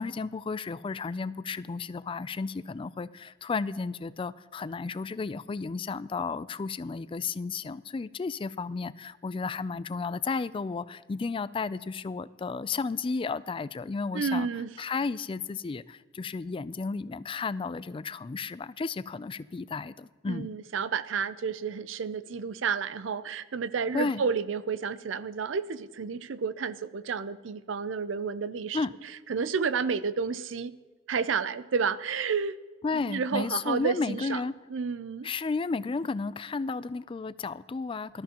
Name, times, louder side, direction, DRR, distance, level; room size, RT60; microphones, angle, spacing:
voice 1, 0.0-14.5 14.8-20.5 23.9-24.2 28.7-28.9 32.8-34.5 35.2-38.2, left 4 dB, 25° left, 16 dB, 0.3 m, -33 dB
voice 2, 14.1-14.7 20.3-28.8 29.3-30.7 31.1-32.6 32.9-34.4 34.7-35.3, right 5 dB, 85° right, 16 dB, 0.5 m, -30 dB
19.0 x 12.5 x 2.9 m, 1.4 s
head